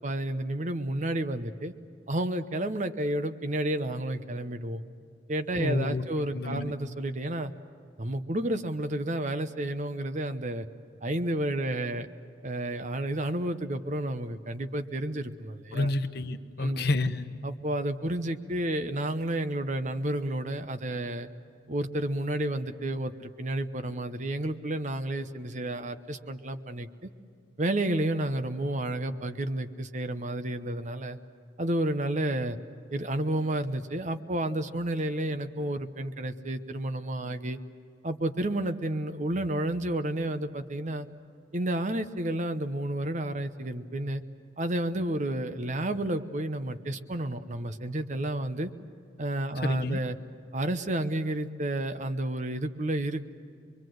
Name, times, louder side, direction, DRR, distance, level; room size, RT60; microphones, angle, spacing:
voice 1, 0.0-1.7 2.1-4.8 5.3-7.5 8.0-10.7 11.0-12.1 12.4-15.9 16.6-16.9 17.4-21.3 21.7-27.1 27.6-31.2 31.6-32.6 32.9-37.6 38.0-41.1 41.5-44.2 44.6-48.7 49.2-50.2 50.5-53.3, right 1 dB, 45° right, 8 dB, 0.9 m, -31 dB
voice 2, 5.6-6.0 6.3-6.7 15.7-17.3 49.6-50.0, left 2 dB, 60° left, 7 dB, 1.0 m, -29 dB
24.5 x 23.5 x 7.9 m, 2.4 s
head